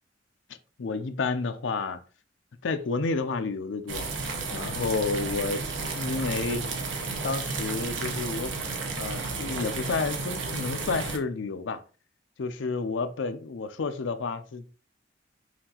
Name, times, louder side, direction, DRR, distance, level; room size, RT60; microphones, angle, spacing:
voice 1, 0.8-2.0 2.6-4.1 4.5-5.7 5.9-6.7 7.2-8.5 9.0-11.8 12.4-14.8, left 4 dB, 80° left, 0.5 m, -30 dB
sound 1, 3.9-11.2, right 4 dB, 85° right, 0.9 m, -32 dB
5.7 x 2.6 x 2.8 m
head